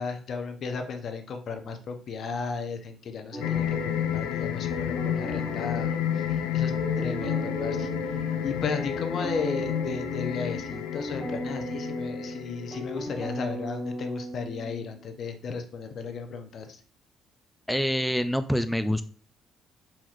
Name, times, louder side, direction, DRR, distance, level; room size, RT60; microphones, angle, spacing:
voice 1, 0.0-7.9 8.2-16.8, left 5 dB, 60° left, 7 dB, 0.7 m, -35 dB
sound 1, 3.3-15.0, right 2 dB, 30° right, 0.7 m, -38 dB
sound 2, 3.4-13.2, left 10 dB, 85° left, 0.4 m, -30 dB
voice 2, 17.7-19.0, equal, ahead, 9 dB, 0.3 m, -26 dB
4.4 x 4.3 x 2.5 m, 0.40 s
supercardioid pair, 75°, 0 cm